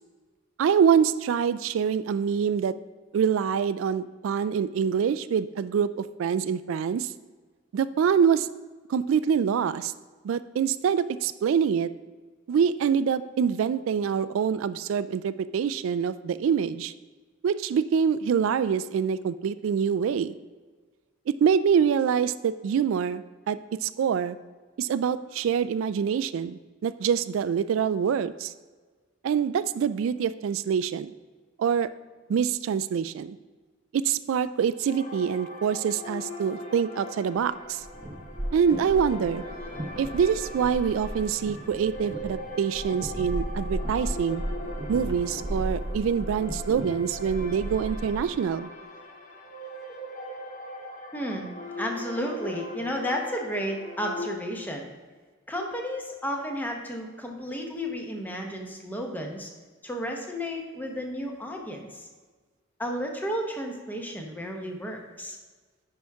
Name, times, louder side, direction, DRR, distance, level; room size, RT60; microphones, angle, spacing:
voice 1, 0.6-2.7 3.1-7.1 7.7-8.5 8.9-9.9 10.2-11.9 12.5-16.9 17.4-20.3 21.3-24.4 24.8-28.5 29.2-31.1 31.6-31.9 32.3-33.4 33.9-37.8 38.5-39.4 40.0-44.4 44.9-48.7, right 7 dB, 75° right, 14 dB, 0.3 m, -25 dB
sound 1, 34.9-54.3, left 1 dB, 40° left, 0.9 m, -40 dB
sound 2, 37.6-48.4, equal, 25° right, 0.8 m, -35 dB
voice 2, 51.1-51.5 51.8-54.9 55.5-59.5 59.8-62.1 62.8-65.4, equal, 10° left, 2 dB, 0.9 m, -32 dB
9.5 x 5.7 x 3.5 m, 1.4 s
head